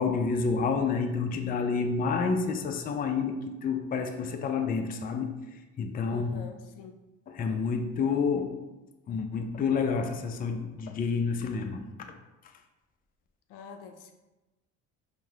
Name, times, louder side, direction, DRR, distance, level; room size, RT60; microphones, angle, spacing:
voice 1, 0.0-5.3 5.8-6.4 7.3-8.6 9.1-11.8, left 5 dB, 25° left, 5 dB, 0.4 m, -29 dB
voice 2, 6.1-7.0 13.5-14.1, left 6 dB, 75° left, 6 dB, 0.5 m, -46 dB
4.6 x 2.1 x 3.4 m, 1.1 s
supercardioid pair, 80°, 33 cm